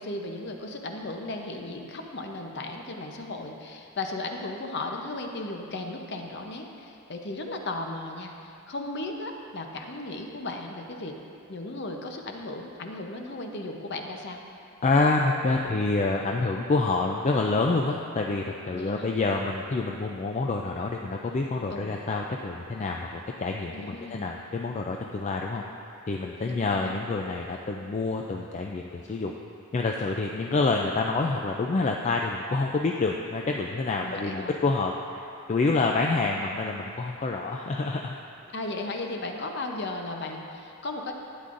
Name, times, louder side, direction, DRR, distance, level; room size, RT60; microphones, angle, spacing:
voice 1, 0.0-11.1 11.5-14.4 18.7-19.2 21.7-22.0 23.7-24.3 26.4-26.9 34.0-34.5 38.5-41.1, left 2 dB, 50° left, 3 dB, 0.7 m, -36 dB
voice 2, 14.8-25.6 26.1-29.3 29.7-38.1, left 3 dB, 30° left, 1 dB, 0.3 m, -27 dB
12.0 x 9.3 x 2.5 m, 2.6 s
head